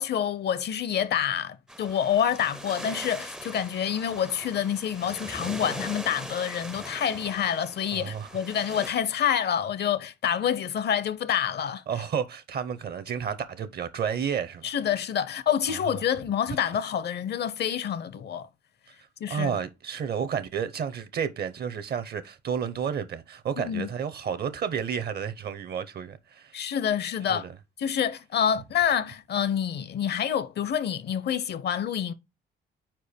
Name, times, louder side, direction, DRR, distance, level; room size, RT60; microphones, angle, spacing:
voice 1, 0.0-11.8 14.6-18.5 19.2-19.6 23.6-23.9 26.5-27.5 27.8-32.1, left 9 dB, 55° left, 0.6 m, -27 dB
sound 1, 1.7-8.9, right 1 dB, 5° right, 0.4 m, -40 dB
voice 2, 7.9-8.3 11.9-14.7 15.7-15.8 19.3-26.6 27.3-27.5, right 7 dB, 55° right, 0.7 m, -31 dB
4.6 x 4.5 x 5.0 m
cardioid pair, 90°, 20 cm